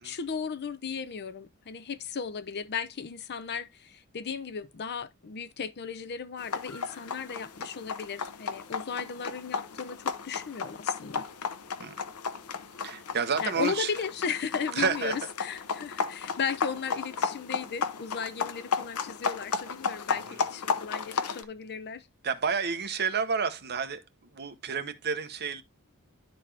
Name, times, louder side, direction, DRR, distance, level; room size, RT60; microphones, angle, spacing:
voice 1, 0.0-11.3 13.4-22.1, left 6 dB, 50° left, 0.6 m, -36 dB
sound 1, 6.4-21.4, left 5 dB, 80° left, 0.8 m, -34 dB
voice 2, 12.8-13.9 14.8-15.3 20.3-20.4 22.2-24.0 24.3-25.6, right 6 dB, 45° right, 0.9 m, -30 dB
11.5 x 4.1 x 3.3 m
head